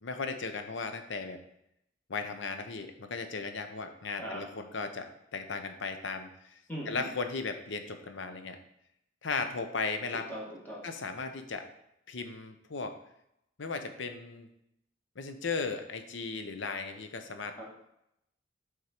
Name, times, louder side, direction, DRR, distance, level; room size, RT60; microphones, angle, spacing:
voice 1, 0.0-1.4 2.1-6.6 6.9-8.6 9.2-10.3 10.8-11.7 12.1-13.0 13.6-14.5 15.2-17.6, left 4 dB, 65° left, 7 dB, 0.7 m, -36 dB
voice 2, 6.7-7.1 10.1-10.8 17.5-17.6, equal, 10° left, -5 dB, 1.7 m, -40 dB
6.3 x 3.7 x 4.4 m, 0.79 s
head